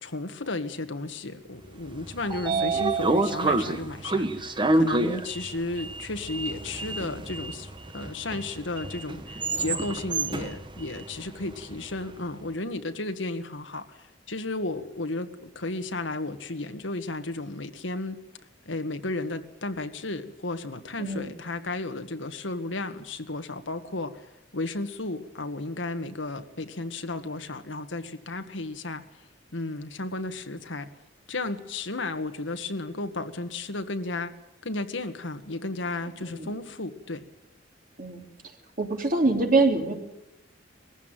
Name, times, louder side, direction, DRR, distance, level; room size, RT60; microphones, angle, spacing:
voice 1, 0.0-18.2 18.7-24.3 24.5-29.0 29.5-30.9 31.3-34.3 34.6-37.2, left 2 dB, 90° left, 7 dB, 1.7 m, -33 dB
Sliding door, 1.9-12.0, right 2 dB, 25° right, 1.1 m, -29 dB
voice 2, 2.5-2.8 21.0-21.3 36.0-36.5 38.0-38.2 38.8-39.9, right 3 dB, 50° right, 3 dB, 3.4 m, -25 dB
21.0 x 15.5 x 9.2 m, 0.96 s
head